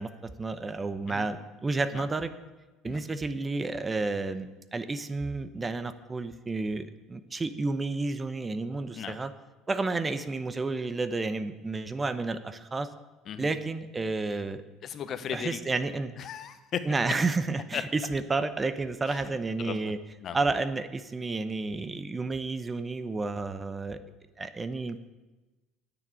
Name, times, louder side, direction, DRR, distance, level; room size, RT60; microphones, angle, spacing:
voice 1, 0.0-2.3 2.8-9.3 9.7-12.9 13.4-14.6 15.3-16.2 16.8-20.0 20.3-24.0 24.4-25.0, right 3 dB, 25° right, 12 dB, 0.9 m, -31 dB
voice 2, 14.8-15.6 16.2-16.9 17.7-17.8 19.1-19.9 20.2-20.4, left 8 dB, 50° left, 11 dB, 1.0 m, -36 dB
9.7 x 7.1 x 8.8 m, 1.2 s
hypercardioid pair, 70°, 0 cm